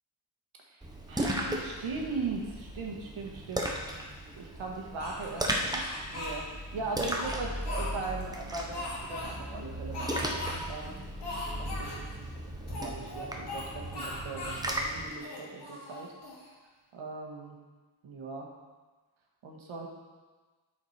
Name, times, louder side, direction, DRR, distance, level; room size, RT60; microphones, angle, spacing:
voice 1, 0.7-3.7 4.4-5.8 6.1-11.0 11.5-12.1 12.6-16.1 16.9-17.5 18.0-18.5 19.4-19.9, right 3 dB, 70° right, -1 dB, 1.7 m, -39 dB
Splash splatter, 0.8-15.1, right 1 dB, 10° right, 0.6 m, -36 dB
Speech, 5.0-6.4 7.0-8.2 8.7-9.3 9.9-10.6 10.8-10.9 11.2-12.0 12.7-13.7 13.9-14.6 15.1-16.5, left 2 dB, 55° left, 2.5 m, -39 dB
12.0 x 5.1 x 4.3 m, 1.4 s
wide cardioid pair, 170°, 49 cm